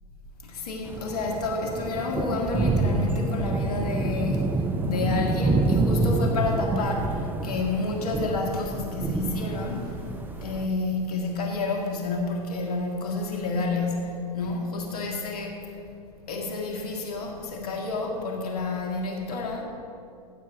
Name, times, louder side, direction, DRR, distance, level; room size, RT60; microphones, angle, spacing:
voice 1, 0.4-4.5 4.8-10.0 10.4-15.6 16.3-19.6, left 3 dB, 75° left, 0 dB, 2.1 m, -29 dB
sound 1, 0.9-10.7, right 2 dB, 10° right, 0.4 m, -27 dB
16.0 x 7.4 x 3.8 m, 2.5 s
hypercardioid pair, 110°, 20 cm